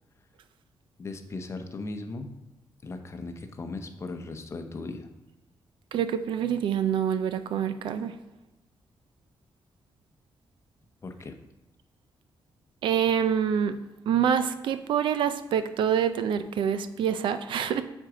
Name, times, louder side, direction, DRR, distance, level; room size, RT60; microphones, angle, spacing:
voice 1, 1.0-2.3 2.8-5.1 11.0-11.4, left 3 dB, 35° left, 7 dB, 0.7 m, -37 dB
voice 2, 5.9-8.2 12.8-17.8, right 8 dB, 85° right, 11 dB, 0.5 m, -26 dB
7.6 x 4.5 x 4.9 m, 0.98 s
cardioid pair, 125°, 8 cm